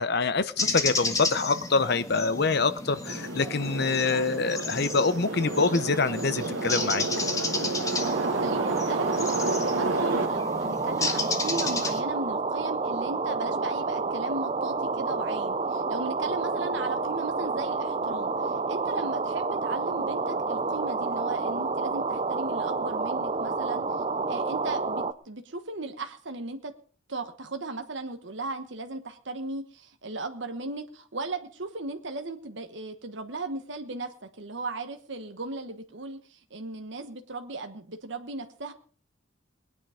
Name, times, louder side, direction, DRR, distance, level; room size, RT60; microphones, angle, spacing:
voice 1, 0.0-7.1, left 4 dB, 55° left, 14 dB, 0.8 m, -25 dB
sound 1, 0.6-12.0, left 3 dB, 15° left, 1.5 m, -33 dB
sound 2, 3.0-10.3, right 3 dB, 80° right, 1.5 m, -31 dB
voice 2, 4.1-4.4 8.2-9.1 9.6-23.8 24.3-26.7 27.1-38.7, right 3 dB, 65° right, 6 dB, 1.2 m, -36 dB
sound 3, 8.0-25.1, right 4 dB, 30° right, 0.6 m, -29 dB
20.5 x 9.7 x 5.0 m, 0.43 s
head